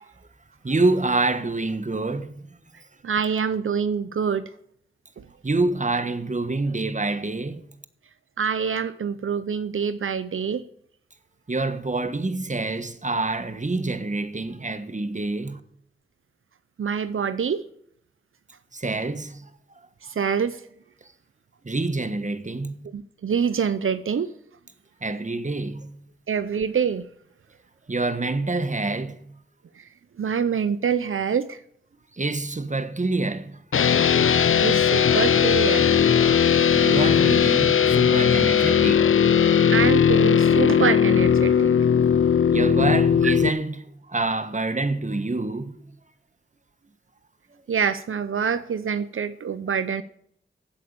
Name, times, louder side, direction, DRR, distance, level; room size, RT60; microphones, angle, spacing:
voice 1, 0.6-2.4 5.4-7.6 11.5-15.6 18.7-19.5 21.6-22.9 25.0-26.0 27.9-29.3 32.1-33.6 34.4-34.5 36.7-39.1 42.5-45.9, right 2 dB, 35° right, 1.3 m, -27 dB
voice 2, 3.0-4.5 5.2-5.3 8.4-10.6 16.8-17.6 20.0-20.6 22.9-24.3 26.3-27.1 29.8-29.9 30.2-31.6 34.6-35.9 39.7-41.7 43.2-43.3 47.7-50.0, right 6 dB, 75° right, 0.6 m, -25 dB
sound 1, 33.7-43.5, left 7 dB, 75° left, 0.6 m, -18 dB
15.5 x 8.7 x 6.8 m
cardioid pair, 45°, 21 cm